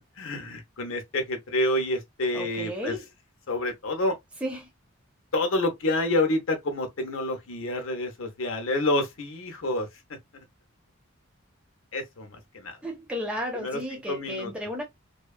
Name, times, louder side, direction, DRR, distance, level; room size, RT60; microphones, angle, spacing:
voice 1, 0.2-2.9 3.5-4.1 5.3-9.9 10.3-10.4 11.9-12.7 13.6-13.8 14.1-14.5, left 1 dB, 70° left, 0.8 m, -28 dB
voice 2, 2.3-3.0 4.4-4.7 12.8-14.8, equal, 5° right, 0.7 m, -33 dB
2.7 x 2.3 x 2.3 m
head